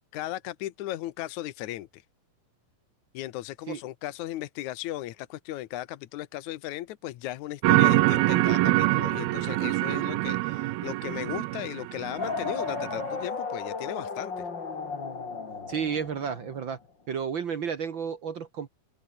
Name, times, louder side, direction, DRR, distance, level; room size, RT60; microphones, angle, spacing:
voice 1, 0.1-2.0 3.1-14.4, left 15 dB, 70° left, 2.0 m, -36 dB
sound 1, 7.6-13.1, right 18 dB, 85° right, 2.6 m, -25 dB
sound 2, 12.2-16.7, left 4 dB, 30° left, 3.5 m, -35 dB
voice 2, 15.7-16.8 17.1-18.7, right 7 dB, 60° right, 1.2 m, -32 dB
open air
omnidirectional pair, 4.1 m